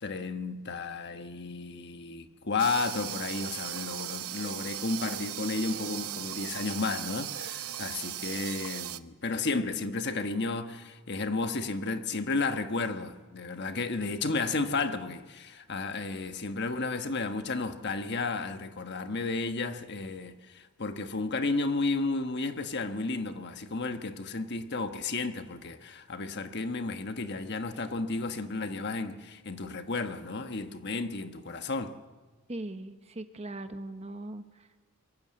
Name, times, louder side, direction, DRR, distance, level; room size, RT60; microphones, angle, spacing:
voice 1, 0.0-32.0, left 3 dB, 50° left, 1.3 m, -33 dB
sound 1, 2.6-9.0, right 11 dB, 80° right, 0.8 m, -37 dB
voice 2, 32.5-34.8, right 1 dB, 30° right, 1.0 m, -40 dB
24.5 x 22.5 x 7.7 m
head